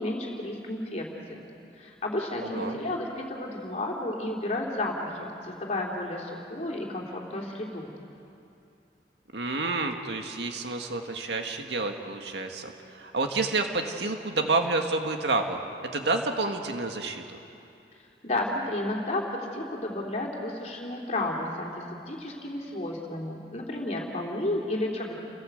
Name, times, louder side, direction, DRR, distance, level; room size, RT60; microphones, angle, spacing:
voice 1, 0.0-1.4 1.8-7.9 18.2-25.1, left 1 dB, 40° left, -1 dB, 3.2 m, -32 dB
voice 2, 2.4-2.8 9.3-15.6 15.9-17.2, right 3 dB, 80° right, 4 dB, 1.9 m, -29 dB
30.0 x 17.0 x 8.0 m, 2.7 s
head